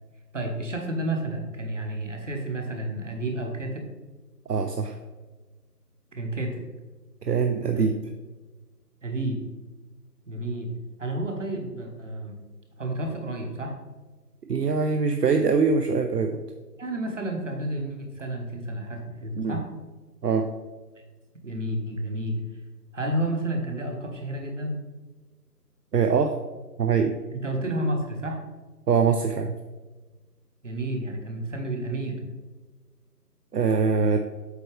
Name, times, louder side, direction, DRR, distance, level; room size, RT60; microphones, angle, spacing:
voice 1, 0.3-3.8 6.1-6.6 7.7-7.9 9.0-9.4 10.3-10.7 11.0-12.4 12.8-13.7 16.8-19.6 21.4-22.4 22.9-24.8 27.3-28.4 30.6-32.2, right 1 dB, 50° right, 2 dB, 1.2 m, -30 dB
voice 2, 4.5-5.0 7.2-7.9 14.5-16.4 19.3-19.6 20.2-20.5 25.9-26.3 26.8-27.1 28.9-29.5 33.5-34.2, right 5 dB, 70° right, 6 dB, 0.6 m, -23 dB
8.1 x 4.6 x 3.3 m, 1.3 s
figure-of-eight pair, 165°, 49 cm